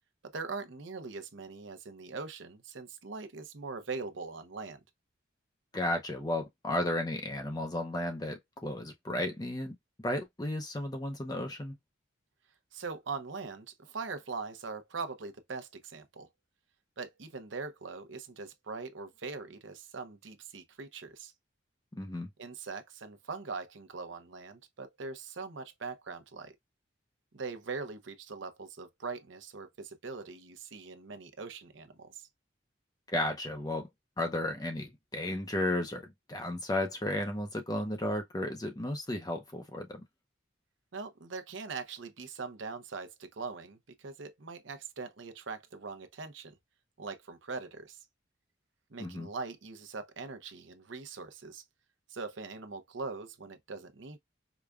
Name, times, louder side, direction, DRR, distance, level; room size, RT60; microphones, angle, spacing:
voice 1, 0.2-4.8 12.7-16.3 17.0-21.3 22.4-26.5 27.3-32.3 40.9-46.5 47.0-48.0 48.9-51.6 52.1-54.2, right 4 dB, 80° right, 0.8 m, -41 dB
voice 2, 5.7-11.7 22.0-22.3 33.1-33.9 34.2-40.0 49.0-49.3, left 1 dB, 20° left, 0.6 m, -34 dB
4.9 x 2.3 x 2.3 m
head